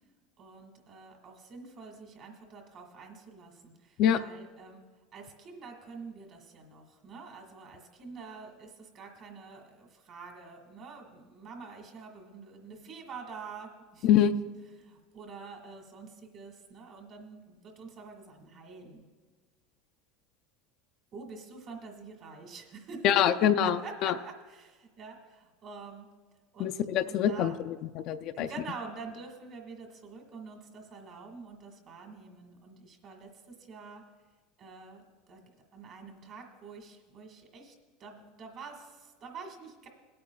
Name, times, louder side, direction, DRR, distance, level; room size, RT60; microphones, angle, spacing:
voice 1, 0.4-4.8 5.1-14.1 14.8-19.1 21.1-23.1 23.4-26.1 26.5-26.7 27.1-27.6 28.3-34.0 34.6-35.0 35.3-35.4 35.7-37.7 38.0-39.9, right 4 dB, 40° right, 3 dB, 1.7 m, -46 dB
voice 2, 23.0-24.1 26.6-28.5, left 10 dB, 50° left, 8 dB, 0.4 m, -25 dB
21.0 x 8.6 x 2.3 m, 1.4 s
supercardioid pair, 135°, 0 cm